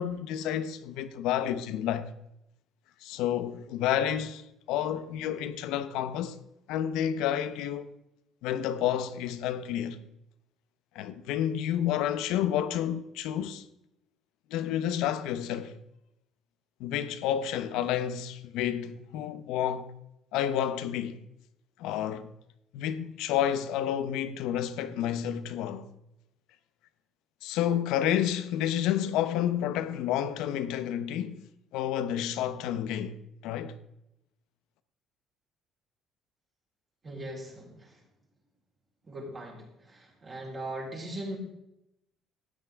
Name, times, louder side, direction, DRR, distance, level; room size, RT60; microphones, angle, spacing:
voice 1, 0.0-2.1 3.0-6.4 6.7-7.9 8.4-10.0 10.9-13.6 14.5-15.8 16.8-19.9 20.3-21.2 21.8-22.3 22.7-25.9 27.4-31.4 31.7-33.2 33.4-33.8, left 10 dB, 85° left, 0.8 m, -30 dB
voice 2, 37.0-38.0 39.0-41.4, right 1 dB, 25° right, 4.1 m, -39 dB
14.5 x 9.3 x 3.6 m
cardioid pair, 135°, 0 cm